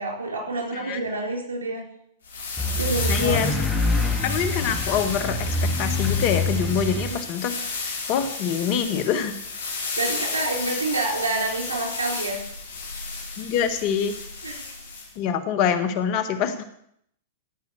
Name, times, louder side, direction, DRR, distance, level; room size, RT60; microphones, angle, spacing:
voice 1, 0.0-1.8 2.8-3.4 6.9-7.2 10.0-12.4 14.4-14.7, right 2 dB, 90° right, 1 dB, 4.2 m, -28 dB
sound 1, 2.2-15.1, left 4 dB, 75° left, 4.8 m, -32 dB
sound 2, 2.6-7.2, left 2 dB, 10° left, 2.9 m, -26 dB
voice 2, 3.1-3.5 4.2-7.6 8.1-9.3 13.4-14.1 15.1-16.6, left 8 dB, 50° left, 10 dB, 1.6 m, -25 dB
16.5 x 5.8 x 7.8 m, 0.71 s
hypercardioid pair, 110°, 0 cm